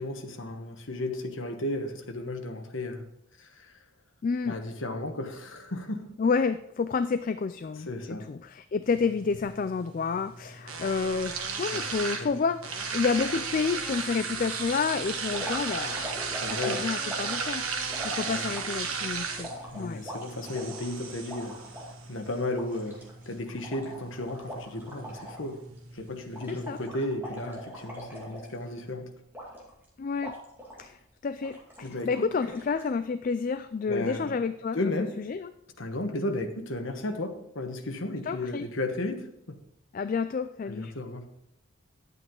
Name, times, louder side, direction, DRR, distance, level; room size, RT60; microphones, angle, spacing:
voice 1, 0.0-3.1 3.4-3.7 4.4-6.1 7.9-8.3 11.7-11.8 12.2-12.3 16.3-16.8 18.2-18.5 19.7-21.6 22.1-25.6 25.9-29.1 31.8-32.3 33.9-34.4 34.7-35.1 35.8-39.6 40.7-41.2, left 2 dB, 65° left, 5 dB, 1.2 m, -34 dB
voice 2, 4.2-4.6 6.2-17.6 18.0-20.0 26.5-26.8 30.0-30.3 30.8-31.0 31.2-34.8 35.2-35.5 38.3-38.6 39.9-40.9, left 5 dB, 40° left, 10 dB, 0.3 m, -30 dB
sound 1, 8.8-26.8, right 5 dB, 80° right, 1.3 m, -36 dB
sound 2, 15.3-18.9 19.4-21.9 22.3-22.4 22.6-25.5 25.8-26.0 26.3-28.8 29.3-29.8 30.2-30.9 31.4-32.0 32.4-32.9, equal, 10° right, 2.3 m, -41 dB
10.5 x 8.4 x 3.8 m, 0.77 s
head